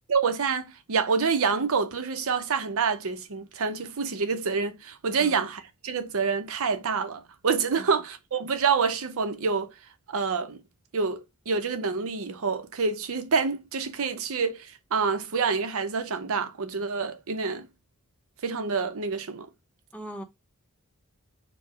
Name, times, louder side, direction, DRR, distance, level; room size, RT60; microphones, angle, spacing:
voice 1, 0.1-9.7 10.1-10.6 10.9-17.7 18.4-19.5, right 5 dB, 65° right, 0.6 m, -27 dB
voice 2, 19.9-20.2, right 1 dB, 5° left, 0.7 m, -39 dB
4.6 x 2.1 x 4.7 m
head